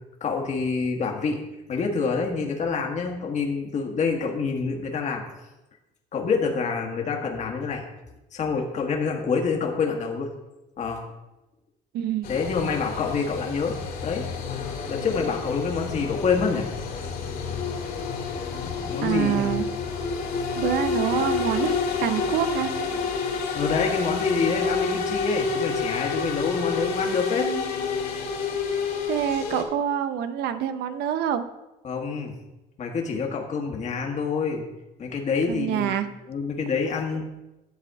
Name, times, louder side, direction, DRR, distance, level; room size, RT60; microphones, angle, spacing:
voice 1, 0.2-1.4 1.7-5.2 6.1-7.8 8.3-10.3 10.8-11.0 12.3-14.2 14.9-16.7 18.6-19.5 23.5-27.4 31.8-32.3 32.8-34.7 35.0-36.0 36.3-37.3, left 5 dB, 45° left, 1 dB, 1.5 m, -27 dB
voice 2, 11.9-12.3 19.0-19.7 20.6-22.7 29.1-31.4 35.5-36.1, right 10 dB, 75° right, 10 dB, 0.7 m, -26 dB
sound 1, 12.2-29.6, left 5 dB, 60° left, 2.3 m, -29 dB
11.0 x 4.1 x 7.5 m, 1.0 s
cardioid pair, 110°, 17 cm